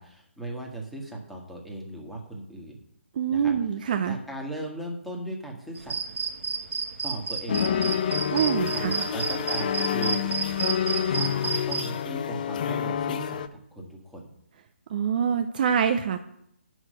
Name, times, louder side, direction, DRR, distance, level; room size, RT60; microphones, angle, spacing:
voice 1, 0.0-2.8 3.3-3.5 4.1-6.0 7.0-7.9 8.5-8.8 9.1-10.3 11.1-13.4 13.7-14.3, right 1 dB, ahead, -1 dB, 1.6 m, -37 dB
voice 2, 3.2-4.2 8.3-9.0 14.9-16.2, right 7 dB, 40° right, 8 dB, 0.6 m, -25 dB
sound 1, 5.8-11.8, right 5 dB, 65° right, 1.4 m, -31 dB
sound 2, 7.5-13.5, left 9 dB, 40° left, 0.6 m, -28 dB
8.8 x 6.3 x 6.3 m, 0.74 s
figure-of-eight pair, 145°, 7 cm